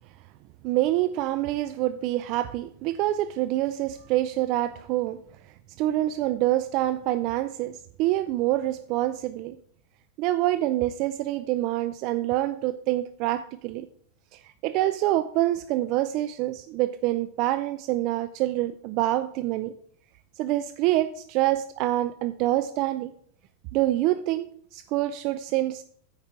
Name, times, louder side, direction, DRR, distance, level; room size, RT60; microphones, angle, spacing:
voice 1, 0.6-5.2 5.8-9.6 10.2-13.9 14.3-19.7 20.4-23.1 23.7-25.8, right 15 dB, 50° right, 12 dB, 0.4 m, -26 dB
8.7 x 5.2 x 5.7 m, 0.62 s
hypercardioid pair, 125°, 0 cm